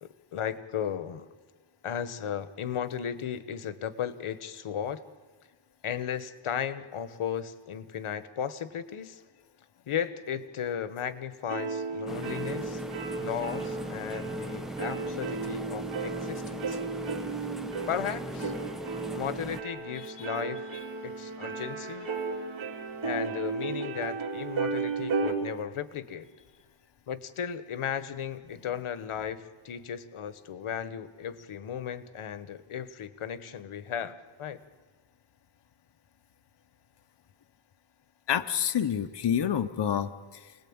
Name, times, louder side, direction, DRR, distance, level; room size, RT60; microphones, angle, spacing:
voice 1, 0.0-1.3 1.8-5.0 5.8-9.2 9.9-12.8 13.2-16.8 17.9-18.5 19.1-20.7 21.0-22.1 23.0-26.3 27.1-34.6, left 8 dB, 80° left, 13 dB, 1.3 m, -35 dB
sound 1, 11.5-25.3, right 4 dB, 65° right, 3.6 m, -35 dB
sound 2, 12.1-19.6, equal, ahead, 1.1 m, -38 dB
Wind instrument woodwind instrument, 19.8-24.0, right 4 dB, 45° right, 4.7 m, -47 dB
voice 2, 38.3-40.5, left 9 dB, 55° left, 8 dB, 1.0 m, -28 dB
28.5 x 19.5 x 8.8 m, 1.4 s
wide cardioid pair, 140°, 49 cm